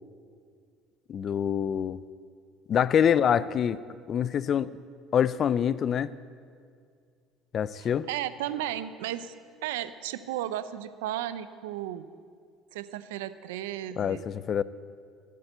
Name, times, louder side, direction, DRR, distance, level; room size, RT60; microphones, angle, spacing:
voice 1, 1.1-2.0 2.7-3.8 4.1-4.7 5.1-6.1 7.5-8.1 14.0-14.6, left 8 dB, 45° left, 17 dB, 0.5 m, -25 dB
voice 2, 7.8-9.3 9.6-12.1 12.7-14.2, right 12 dB, 90° right, 13 dB, 0.6 m, -34 dB
17.0 x 8.5 x 8.0 m, 2.2 s
supercardioid pair, 85°, 0 cm